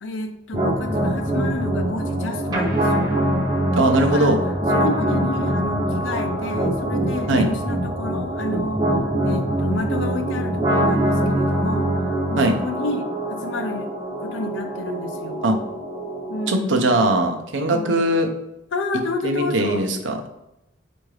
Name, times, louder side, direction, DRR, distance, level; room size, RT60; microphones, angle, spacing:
voice 1, 0.0-3.2 4.0-4.4 4.7-8.9 9.2-13.9 14.2-15.4 16.3-17.0 17.7-18.1 18.7-19.8, left 3 dB, 85° left, 6 dB, 0.5 m, -30 dB
sound 1, 0.5-16.5, right 1 dB, 20° right, 0.7 m, -23 dB
voice 2, 3.8-4.4 7.3-7.5 12.4-12.6 15.4-15.6 16.5-18.3 19.2-20.3, right 1 dB, 85° right, 5 dB, 0.6 m, -20 dB
4.6 x 2.6 x 3.2 m, 0.88 s
head